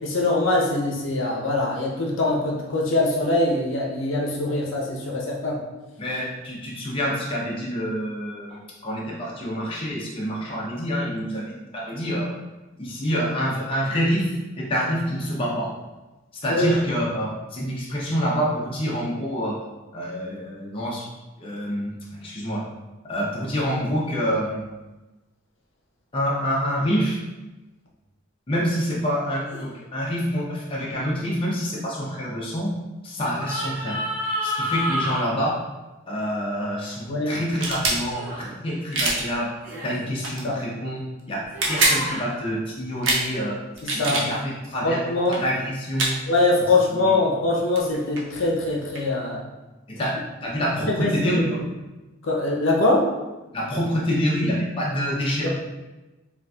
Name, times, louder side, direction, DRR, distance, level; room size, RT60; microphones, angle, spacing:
voice 1, 0.0-5.6 16.5-16.7 37.1-37.4 40.4-40.6 43.8-44.3 44.8-45.4 46.3-49.4 50.9-51.5 52.2-53.1 55.4-55.5, left 2 dB, 75° left, -2 dB, 0.6 m, -23 dB
voice 2, 6.0-12.3 12.8-14.3 14.6-15.7 16.4-19.5 19.9-21.0 21.4-21.9 22.2-22.6 23.0-24.7 26.1-27.2 28.5-32.7 33.0-34.0 34.4-35.5 36.1-39.5 39.8-41.0 41.3-41.4 41.7-43.6 44.1-45.0 45.3-46.2 46.9-47.1 49.9-50.1 50.4-51.6 53.5-55.5, equal, 25° left, -5 dB, 0.6 m, -27 dB
sound 1, 29.5-29.7 33.3-35.2 38.1-38.4 39.6-39.9 41.5-42.2, equal, 10° right, 1.0 m, -29 dB
sound 2, 37.5-38.0 38.9-39.2 40.2-40.4 41.4-42.0 43.0-43.2 43.7-44.3 45.2-45.4 46.0-46.1 47.5-47.6 47.8-49.1, right 2 dB, 65° right, 0.6 m, -23 dB
3.9 x 2.4 x 2.3 m, 1.1 s
head